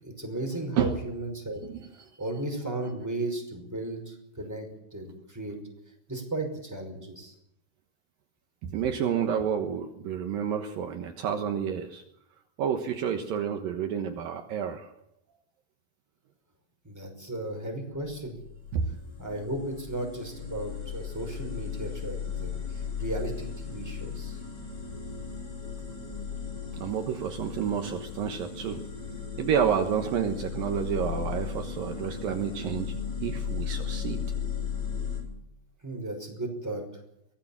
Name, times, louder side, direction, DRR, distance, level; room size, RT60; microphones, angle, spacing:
voice 1, 0.0-1.6 2.2-5.6 6.1-7.3 16.8-18.4 19.2-24.4 35.8-36.8, right 2 dB, 5° right, 2 dB, 5.3 m, -35 dB
voice 2, 1.7-2.1 8.6-12.0 12.6-14.9 18.7-18.9 26.7-28.8 29.4-32.9 33.2-34.2, right 8 dB, 70° right, 5 dB, 2.9 m, -29 dB
sound 1, 18.0-35.2, left 6 dB, 25° left, 4.5 m, -36 dB
23.5 x 18.0 x 7.4 m, 0.78 s
omnidirectional pair, 4.5 m